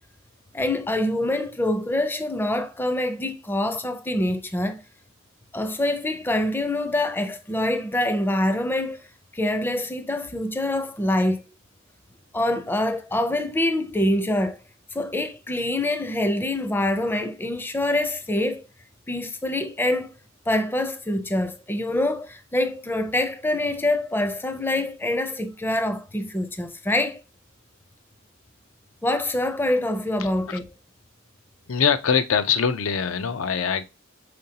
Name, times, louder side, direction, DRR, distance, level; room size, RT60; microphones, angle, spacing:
voice 1, 0.5-4.8 5.5-9.0 9.3-11.4 12.3-14.6 14.9-18.7 19.1-20.2 20.5-27.2 29.0-30.6, left 1 dB, 10° left, 0.4 m, -25 dB
voice 2, 31.7-33.8, left 7 dB, 85° left, 0.5 m, -23 dB
5.0 x 3.8 x 2.7 m
head